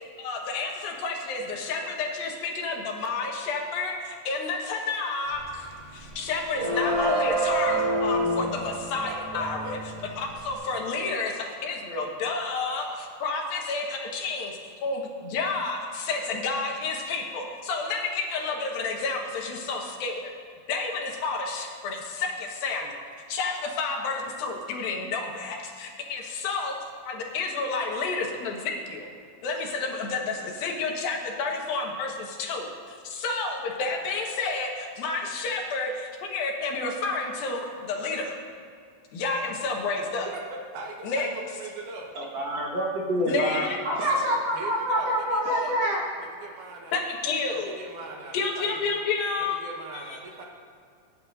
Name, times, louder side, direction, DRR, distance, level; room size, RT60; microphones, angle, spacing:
voice 1, 0.2-5.7 5.9-9.8 10.2-20.3 20.7-23.0 23.3-26.8 27.1-29.1 29.4-32.7 33.0-38.4 39.1-40.3 41.0-41.3 43.2-43.8 46.9-47.7 48.3-49.6 49.9-50.2, left 4 dB, 85° left, 1 dB, 3.2 m, -30 dB
sound 1, 5.3-5.6 5.8-10.5, right 1 dB, 35° right, 2.0 m, -28 dB
voice 2, 9.0-9.7 40.3-40.4 40.7-42.1 44.5-47.0 47.5-50.4, right 3 dB, 70° right, 0 dB, 2.8 m, -40 dB
voice 3, 42.2-46.0, equal, 50° right, -2 dB, 2.3 m, -26 dB
27.0 x 9.7 x 2.7 m, 2.3 s
omnidirectional pair, 4.1 m